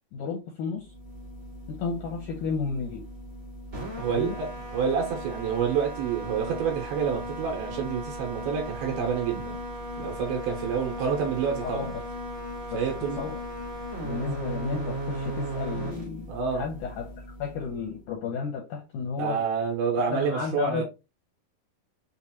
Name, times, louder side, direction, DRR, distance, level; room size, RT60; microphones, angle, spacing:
voice 1, 0.1-0.9 1.7-3.1 4.1-4.4 11.6-12.0 12.7-12.8 13.2-13.4 14.0-19.4 20.1-20.8, left 5 dB, 75° left, 1.9 m, -32 dB
sound 1, 0.8-18.0, right 1 dB, 30° right, 1.4 m, -37 dB
voice 2, 4.0-9.6 10.0-11.9 12.7-13.3 16.3-16.6 19.2-20.8, right 7 dB, 75° right, 2.8 m, -28 dB
6.5 x 2.6 x 2.8 m
omnidirectional pair, 4.6 m